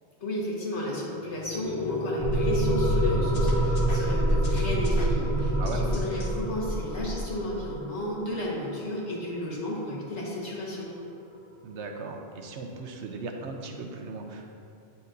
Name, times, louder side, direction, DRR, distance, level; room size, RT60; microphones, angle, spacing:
voice 1, 0.2-10.9, left 1 dB, 85° left, -4 dB, 1.7 m, -33 dB
sound 1, 0.8-11.8, left 2 dB, 20° left, 0.6 m, -35 dB
sound 2, 2.2-7.6, right 1 dB, 25° right, 0.7 m, -26 dB
sound 3, 3.3-6.3, left 2 dB, 55° left, 1.0 m, -43 dB
voice 2, 5.6-5.9 11.6-14.5, right 3 dB, 85° right, 3 dB, 1.0 m, -37 dB
9.0 x 5.9 x 2.6 m, 2.5 s
omnidirectional pair, 1.1 m